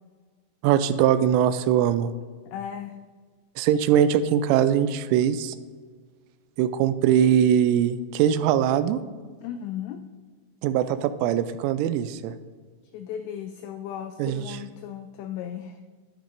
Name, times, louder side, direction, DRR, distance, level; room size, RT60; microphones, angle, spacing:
voice 1, 0.6-2.1 3.6-5.6 6.6-9.0 10.6-12.3 14.2-14.4, right 9 dB, 90° right, 12 dB, 3.0 m, -21 dB
voice 2, 2.5-3.0 9.4-10.0 12.9-15.8, left 9 dB, 90° left, 8 dB, 2.5 m, -36 dB
11.5 x 10.0 x 2.6 m, 1.5 s
omnidirectional pair, 5.5 m